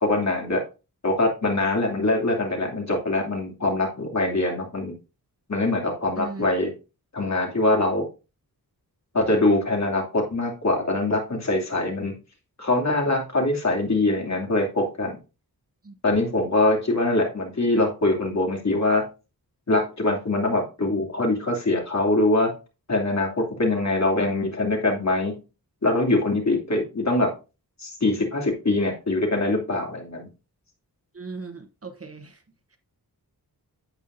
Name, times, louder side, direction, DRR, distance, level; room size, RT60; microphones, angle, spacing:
voice 1, 0.0-0.6 1.0-5.0 5.5-6.7 7.1-8.1 9.1-12.1 12.6-15.2 16.0-19.0 19.7-22.5 22.9-25.4 25.8-27.3 27.8-30.3, left 2 dB, 45° left, 2.8 m, -23 dB
voice 2, 31.1-32.3, right 3 dB, 35° right, 1.0 m, -37 dB
9.0 x 8.4 x 2.6 m
wide cardioid pair, 115°, 38 cm